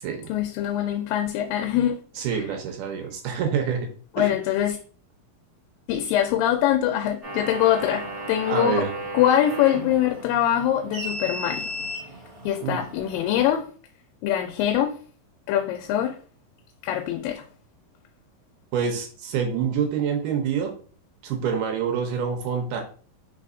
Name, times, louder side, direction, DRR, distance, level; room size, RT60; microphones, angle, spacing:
voice 1, 0.3-2.0 2.3-2.5 4.2-4.8 5.9-8.8 9.1-11.7 12.4-13.6 14.2-15.0 15.5-16.2 16.8-17.4, left 11 dB, 80° left, 2.2 m, -23 dB
voice 2, 2.2-3.9 4.2-4.3 8.5-8.9 12.6-12.8 18.7-20.7 21.2-22.8, right 7 dB, 75° right, 2.1 m, -26 dB
sound 1, 7.2-13.6, right 1 dB, 20° right, 1.5 m, -35 dB
4.8 x 3.9 x 2.6 m
omnidirectional pair, 4.2 m